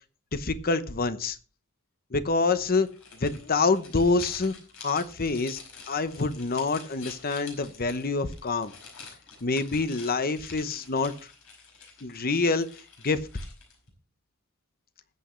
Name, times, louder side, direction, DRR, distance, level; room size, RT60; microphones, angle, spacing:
voice 1, 0.3-1.4 2.1-2.9 3.2-4.5 4.8-5.6 5.9-8.7 9.4-11.1 12.0-12.7 13.0-13.2, left 3 dB, 45° left, 12 dB, 0.9 m, -26 dB
sound 1, 2.7-13.9, left 5 dB, 70° left, 5.3 m, -48 dB
20.0 x 8.2 x 3.2 m, 0.37 s
head